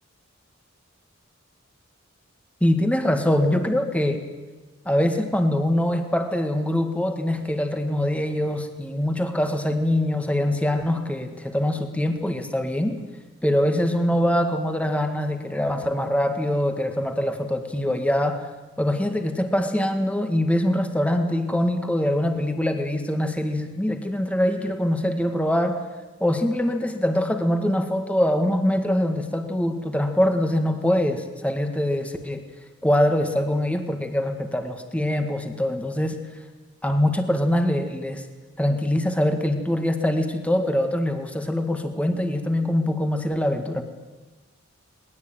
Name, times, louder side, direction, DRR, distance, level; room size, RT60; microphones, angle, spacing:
voice 1, 2.6-4.2 4.9-13.0 13.4-18.4 18.8-25.8 26.2-32.4 32.8-36.2 36.8-38.2 38.6-43.8, left 1 dB, 5° left, 6 dB, 1.9 m, -23 dB
21.5 x 19.5 x 9.1 m, 1.2 s
head